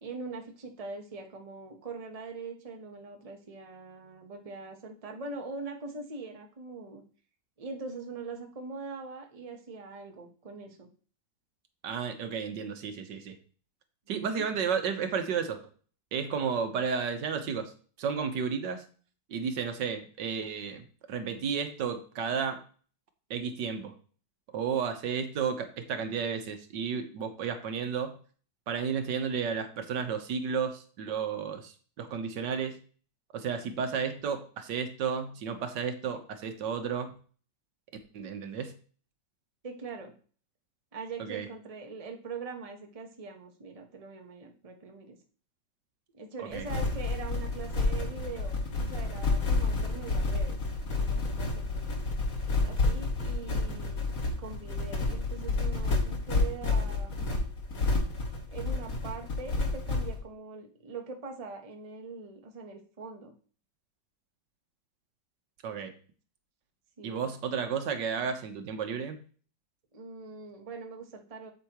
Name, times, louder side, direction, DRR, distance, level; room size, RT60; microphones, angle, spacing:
voice 1, 0.0-7.0 7.6-10.9 14.1-14.5 39.6-40.1 40.9-45.2 46.1-50.6 51.0-51.9 52.6-57.3 58.5-63.3 67.0-67.3 69.9-71.5, right 4 dB, 25° right, 3 dB, 1.0 m, -42 dB
voice 2, 11.8-13.4 14.1-15.6 16.1-17.7 18.0-18.8 19.3-22.6 23.3-23.9 24.5-28.2 28.7-32.8 33.3-37.2 38.1-38.8 41.2-41.5 46.4-46.7 65.6-65.9 67.0-69.2, right 6 dB, 80° right, 7 dB, 1.7 m, -32 dB
sound 1, 46.5-60.2, left 3 dB, 50° left, 2.1 m, -30 dB
8.2 x 7.7 x 3.0 m, 0.42 s
omnidirectional pair, 1.9 m